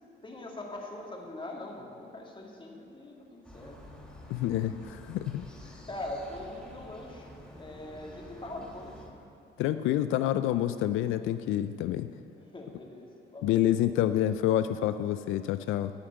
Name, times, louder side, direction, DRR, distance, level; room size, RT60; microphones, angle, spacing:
voice 1, 0.0-3.8 5.8-9.0 12.3-13.6, left 1 dB, 25° left, -1 dB, 2.2 m, -42 dB
sound 1, 3.4-9.1, left 1 dB, 5° left, 3.1 m, -49 dB
voice 2, 4.3-5.4 9.6-12.1 13.4-15.9, left 12 dB, 90° left, 11 dB, 0.4 m, -28 dB
14.0 x 5.0 x 8.9 m, 2.6 s
cardioid pair, 90°, 20 cm